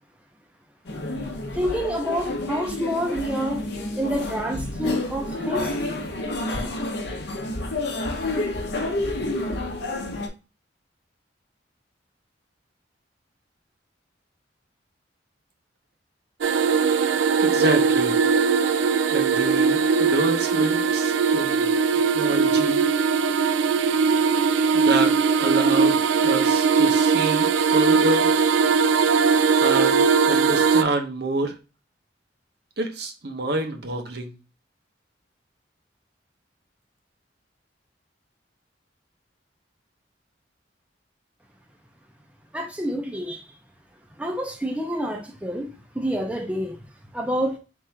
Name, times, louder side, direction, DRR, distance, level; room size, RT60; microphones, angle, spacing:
sound 1, 0.9-10.3, left 2 dB, 65° left, 0.8 m, -29 dB
voice 1, 1.5-3.6 4.0-5.8 42.5-43.5 44.2-46.8 47.1-47.6, equal, 5° right, 0.5 m, -28 dB
sound 2, 16.4-30.8, right 5 dB, 80° right, 0.3 m, -20 dB
voice 2, 17.4-18.2 19.1-22.8 24.7-28.3 29.6-31.6 32.8-34.4, right 2 dB, 60° right, 0.8 m, -28 dB
3.7 x 2.5 x 4.4 m
head